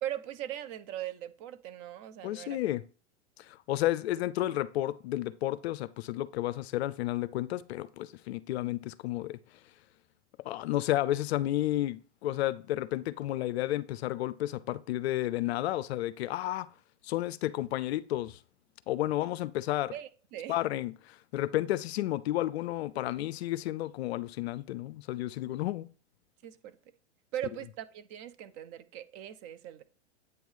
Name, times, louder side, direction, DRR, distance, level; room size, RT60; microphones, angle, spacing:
voice 1, 0.0-2.6 19.9-20.6 26.4-26.8 27.3-29.8, right 12 dB, 30° right, 0.4 m, -40 dB
voice 2, 2.2-2.8 3.4-9.4 10.4-16.7 17.0-18.4 18.9-19.9 20.5-25.9, left 14 dB, 60° left, 0.5 m, -32 dB
8.1 x 3.1 x 5.4 m
hypercardioid pair, 120°, 36 cm